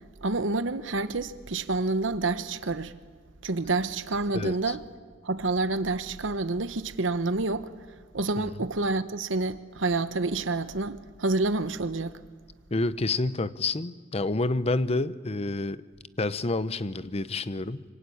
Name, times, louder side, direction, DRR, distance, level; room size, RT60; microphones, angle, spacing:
voice 1, 0.2-2.9 3.4-4.8 5.2-7.7 8.1-12.2, right 3 dB, 70° right, 1.1 m, -28 dB
voice 2, 4.3-4.7 8.5-8.6 12.7-15.8 16.2-17.8, left 2 dB, 30° left, 0.8 m, -28 dB
26.0 x 25.0 x 8.6 m
head